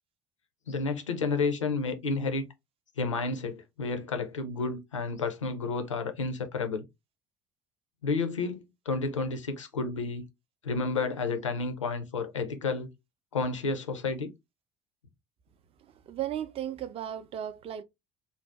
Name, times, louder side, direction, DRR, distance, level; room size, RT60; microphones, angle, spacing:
voice 1, 0.7-2.5 3.0-6.8 8.0-10.3 10.6-12.9 13.3-14.3, left 4 dB, 85° left, 0.5 m, -31 dB
voice 2, 15.8-17.8, right 11 dB, 40° right, 0.4 m, -35 dB
2.6 x 2.0 x 3.3 m
figure-of-eight pair, 55°, 15 cm